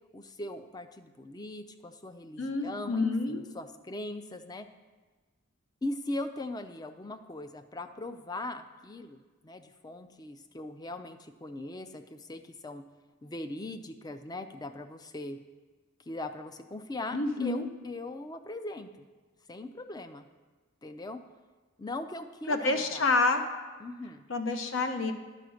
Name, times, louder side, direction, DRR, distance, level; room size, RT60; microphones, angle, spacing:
voice 1, 0.1-4.7 5.8-12.8 13.2-15.4 16.1-19.1 19.5-20.3 20.8-21.2 21.8-23.1 23.8-24.3, left 2 dB, 20° left, 9 dB, 0.4 m, -40 dB
voice 2, 2.4-3.4 17.1-17.7 22.5-23.4 24.3-25.1, left 3 dB, 70° left, 6 dB, 0.9 m, -28 dB
10.5 x 5.0 x 6.3 m, 1.3 s
head